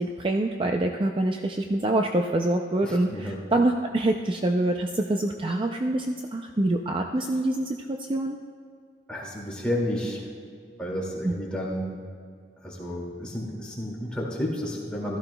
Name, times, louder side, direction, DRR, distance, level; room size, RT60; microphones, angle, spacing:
voice 1, 0.0-8.4 11.2-11.3, right 1 dB, 30° right, 3 dB, 0.4 m, -25 dB
voice 2, 2.8-3.4 9.1-10.2 10.8-12.0 12.6-15.2, equal, 5° left, -4 dB, 2.2 m, -31 dB
16.0 x 13.5 x 2.3 m, 2.2 s
head